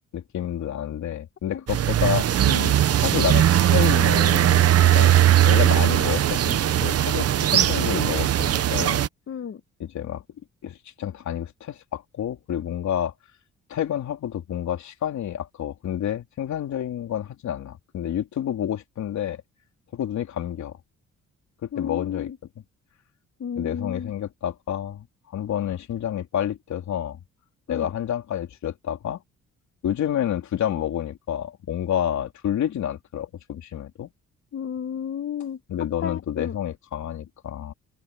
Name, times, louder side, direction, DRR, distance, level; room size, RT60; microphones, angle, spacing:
voice 1, 0.1-2.3 3.0-9.0 9.8-10.2 10.6-13.1 13.7-19.4 19.9-20.7 21.6-22.3 23.5-25.1 25.3-27.2 27.7-29.2 29.8-34.1 35.7-37.7, left 10 dB, 70° left, 3.4 m, -29 dB
sound 1, 1.7-9.1, right 11 dB, 55° right, 0.9 m, -19 dB
voice 2, 9.3-9.6 21.7-22.4 23.4-24.1 27.7-27.9 34.5-35.6 36.0-36.6, left 8 dB, 45° left, 1.2 m, -32 dB
cardioid pair, 90°, 30 cm